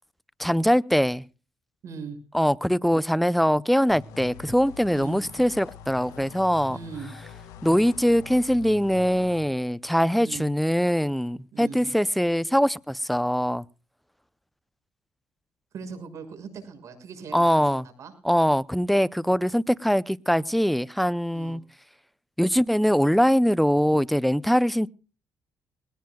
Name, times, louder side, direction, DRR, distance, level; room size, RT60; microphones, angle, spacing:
voice 1, 0.4-1.2 2.3-6.8 7.6-13.6 17.3-17.9 18.2-21.6 22.4-24.9, equal, ahead, 0.7 m, -22 dB
voice 2, 1.8-2.2 4.9-5.2 6.7-7.1 10.2-10.5 11.5-11.9 15.7-18.1 21.3-21.6, right 5 dB, 60° right, 6.3 m, -40 dB
sound 1, 3.9-9.4, left 6 dB, 85° left, 2.3 m, -44 dB
20.5 x 18.0 x 2.4 m
cardioid pair, 75°, 6 cm